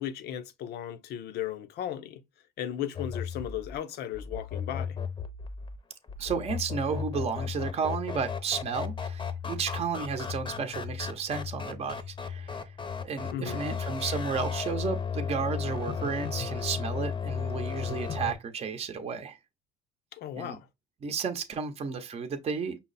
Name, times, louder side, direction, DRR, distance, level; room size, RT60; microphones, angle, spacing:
voice 1, 0.0-2.2 2.6-5.0 13.3-13.7 20.1-20.7, left 10 dB, 75° left, 0.7 m, -36 dB
sound 1, 2.9-18.3, left 6 dB, 30° left, 0.7 m, -35 dB
voice 2, 6.2-12.7 13.0-19.4 20.4-20.6 21.0-22.8, right 6 dB, 35° right, 0.7 m, -33 dB
5.6 x 2.0 x 4.0 m
cardioid pair, 110°, 17 cm